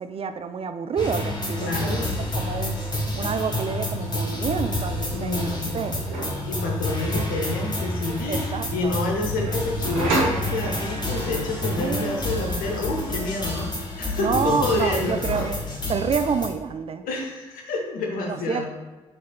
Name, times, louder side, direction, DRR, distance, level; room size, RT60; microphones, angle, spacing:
voice 1, 0.0-2.0 2.4-2.8 3.2-5.9 7.2-7.3 8.3-9.0 11.8-12.5 14.2-15.6 15.9-17.0 18.2-18.7, right 6 dB, 40° right, 10 dB, 0.4 m, -28 dB
sound 1, 1.0-16.5, left 1 dB, 30° left, 1.4 m, -29 dB
voice 2, 1.6-2.1 5.1-5.9 6.4-15.2 17.0-18.7, left 3 dB, 65° left, 1 dB, 0.9 m, -28 dB
sound 2, 2.8-3.1 3.3-4.1 5.1-6.5 9.5-11.1 13.3-13.9 14.2-15.9, right 2 dB, 75° right, 1.1 m, -32 dB
5.8 x 4.1 x 2.2 m, 1.2 s
hypercardioid pair, 40°, 16 cm